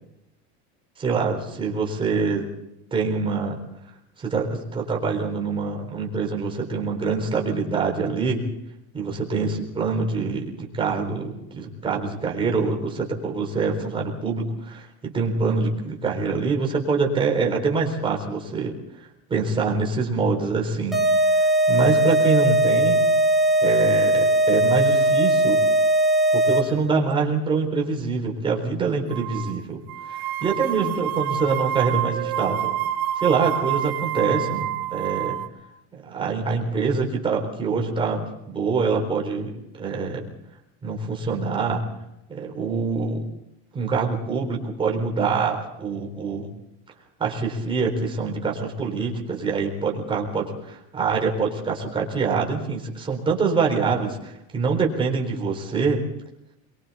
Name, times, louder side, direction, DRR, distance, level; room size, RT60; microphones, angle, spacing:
voice 1, 1.0-2.4 2.9-3.6 4.2-8.4 8.9-18.8 19.3-21.0 21.4-23.1 23.6-25.6 26.3-29.8 30.1-32.7 33.2-35.4 36.1-40.2 40.8-41.8 42.3-43.2 43.7-46.5 47.2-56.0, right 4 dB, 15° right, 0 dB, 4.3 m, -25 dB
sound 1, 20.9-26.9, right 1 dB, ahead, 3.1 m, -19 dB
sound 2, 29.1-29.5 29.9-35.5, right 11 dB, 45° right, 2.3 m, -27 dB
27.0 x 23.0 x 4.3 m, 0.83 s
cardioid pair, 165°, 32 cm